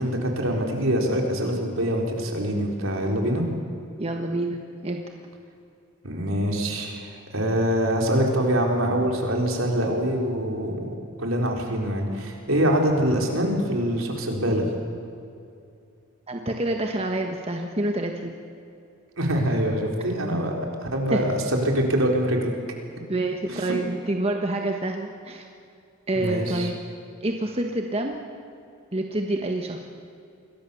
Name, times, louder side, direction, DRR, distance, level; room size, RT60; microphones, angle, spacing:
voice 1, 0.0-3.4 6.0-10.9 11.2-14.7 19.2-20.6 20.9-22.5 23.5-23.8 26.1-26.7, equal, 70° right, 1 dB, 4.3 m, -24 dB
voice 2, 4.0-4.6 4.8-5.0 16.3-18.3 21.1-21.3 23.1-25.5 26.1-26.8 27.2-28.2 28.9-29.8, right 1 dB, 30° right, 3 dB, 1.4 m, -27 dB
28.0 x 22.0 x 7.1 m, 2.5 s
head